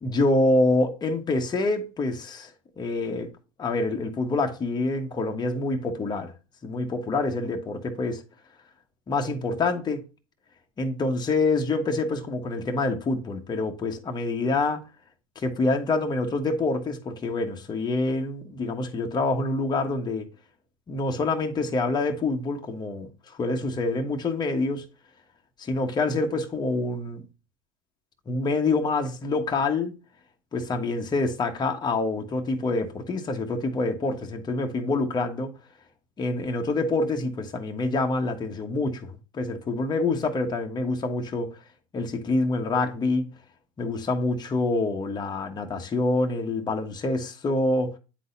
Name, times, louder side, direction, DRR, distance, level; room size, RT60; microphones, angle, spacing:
voice 1, 0.0-2.5 2.8-3.3 3.6-6.3 6.6-8.2 9.1-10.0 10.8-14.8 15.3-20.3 20.9-24.8 25.6-27.2 28.3-30.0 30.5-35.5 36.2-41.5 41.9-43.3 43.8-47.9, left 2 dB, 25° left, 1.2 m, -26 dB
9.3 x 4.0 x 2.6 m
hypercardioid pair, 95°, 18 cm